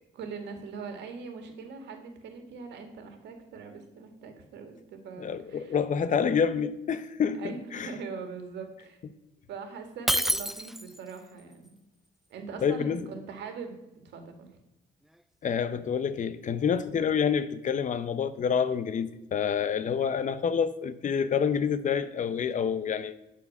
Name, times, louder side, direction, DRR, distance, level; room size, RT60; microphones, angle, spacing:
voice 1, 0.1-5.8 7.4-9.0 9.5-11.7 12.3-14.6, right 5 dB, 75° right, 1.9 m, -41 dB
voice 2, 5.2-7.9 12.6-13.1 15.4-23.1, left 7 dB, 45° left, 0.7 m, -28 dB
Shatter, 10.1-11.1, equal, ahead, 0.3 m, -27 dB
11.5 x 4.5 x 6.0 m
cardioid pair, 95°, 18 cm